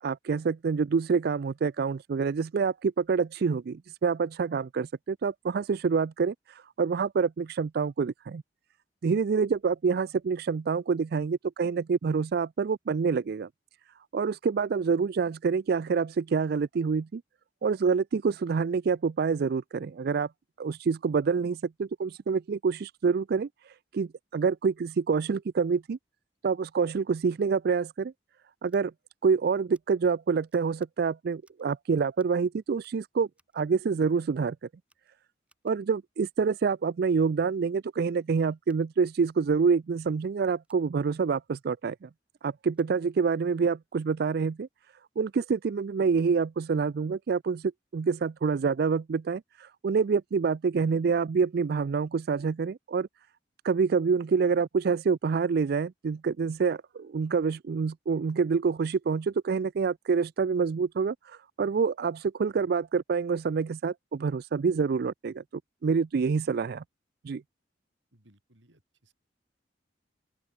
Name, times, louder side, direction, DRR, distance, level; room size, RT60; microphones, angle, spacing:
voice 1, 0.0-8.4 9.0-13.5 14.1-17.2 17.6-20.3 20.6-26.0 26.4-28.1 28.6-28.9 29.2-33.3 33.5-34.6 35.6-42.1 42.4-44.7 45.2-53.1 53.6-65.4 65.8-66.8 67.2-67.4, right 5 dB, 55° right, 0.4 m, -27 dB
Scissors, 28.7-28.8 29.7-29.8 30.5-30.9 31.4-31.7 32.1-32.4 32.8-33.6 34.3-34.5 34.8-35.9 38.6-38.8 40.6-40.9 42.7-43.0, right 2 dB, 5° right, 6.0 m, -69 dB
voice 2, 68.1-69.1, right 1 dB, 85° right, 4.7 m, -63 dB
open air
head